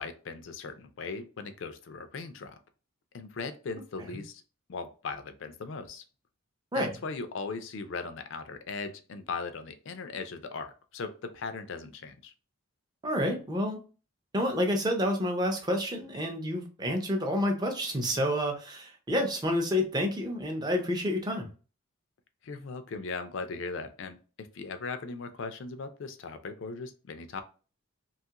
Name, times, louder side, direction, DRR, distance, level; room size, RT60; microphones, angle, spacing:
voice 1, 0.0-2.6 3.1-4.4 4.7-6.0 6.7-12.3 22.4-27.4, left 4 dB, 60° left, 9 dB, 0.4 m, -38 dB
voice 2, 13.0-13.8 14.3-21.5, equal, 20° right, 3 dB, 0.5 m, -29 dB
2.8 x 2.4 x 2.8 m, 0.35 s
head